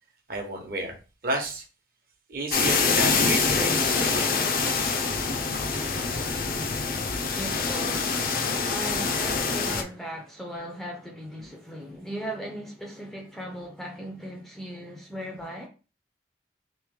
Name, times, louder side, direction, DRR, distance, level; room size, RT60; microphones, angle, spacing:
voice 1, 0.3-0.9 1.2-1.6 2.3-4.8, right 2 dB, 50° right, 0.9 m, -32 dB
sound 1, 2.5-9.8, left 4 dB, 50° left, 0.5 m, -25 dB
voice 2, 7.3-8.1 8.7-15.7, equal, ahead, 0.5 m, -37 dB
3.1 x 3.0 x 3.6 m
head